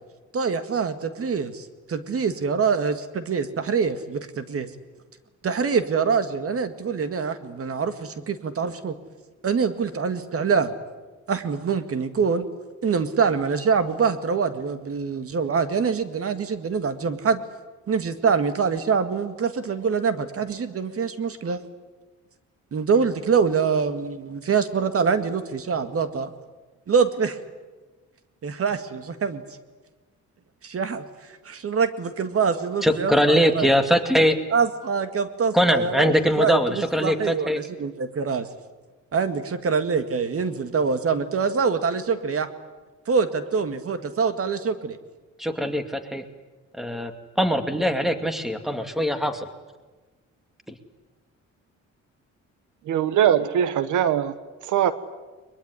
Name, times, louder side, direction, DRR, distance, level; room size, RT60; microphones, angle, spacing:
voice 1, 0.3-4.7 5.4-9.0 9.4-10.7 11.3-12.5 12.8-17.4 17.9-21.6 22.7-26.3 26.9-27.4 28.4-29.4 30.6-31.0 31.5-33.7 34.5-38.5 39.1-42.5 43.1-45.0, right 5 dB, 50° right, 10 dB, 2.0 m, -25 dB
voice 2, 32.8-34.4 35.5-37.6 45.4-46.2 46.8-47.1 47.4-49.5, equal, ahead, 8 dB, 2.4 m, -22 dB
voice 3, 52.9-54.3 54.6-54.9, right 10 dB, 80° right, 14 dB, 1.2 m, -21 dB
22.0 x 21.5 x 9.8 m, 1.2 s
cardioid pair, 90°, 30 cm